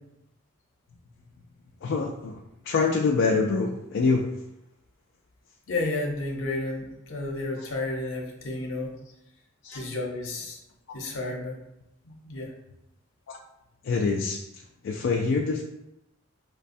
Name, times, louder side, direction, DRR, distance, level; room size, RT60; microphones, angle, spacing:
voice 1, 1.8-2.4 2.7-4.3 9.6-9.8 13.3-13.4 13.8-14.4 14.8-15.6, left 4 dB, 65° left, 0 dB, 0.3 m, -25 dB
voice 2, 5.7-8.9 9.7-10.6 10.9-11.6 12.0-12.5, left 2 dB, 85° left, 1 dB, 0.7 m, -31 dB
4.8 x 2.2 x 2.6 m, 0.85 s
head